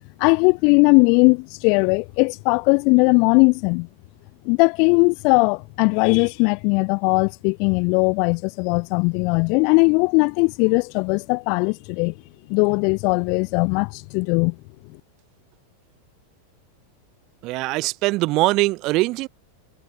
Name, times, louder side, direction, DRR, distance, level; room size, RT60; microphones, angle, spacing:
voice 1, 0.2-3.9 4.4-12.1 12.5-14.6, left 35 dB, 45° left, 0.5 m, -19 dB
voice 2, 17.4-19.3, right 21 dB, 40° right, 1.3 m, -22 dB
figure-of-eight pair, 90°, 0 cm